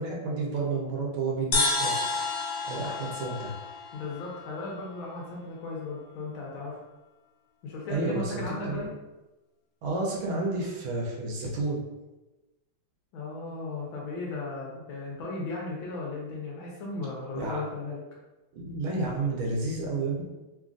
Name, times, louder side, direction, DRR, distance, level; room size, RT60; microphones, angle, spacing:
voice 1, 0.0-2.3 2.6-3.5 7.9-8.9 9.8-11.8 17.3-17.6 18.5-20.2, right 3 dB, 75° right, -1 dB, 1.5 m, -31 dB
sound 1, 1.5-5.0, left 3 dB, 90° left, 0.9 m, -30 dB
voice 2, 3.9-6.8 7.6-9.0 13.1-18.0, left 3 dB, 75° left, -3 dB, 1.4 m, -36 dB
3.7 x 2.5 x 2.4 m, 1.0 s
omnidirectional pair, 2.4 m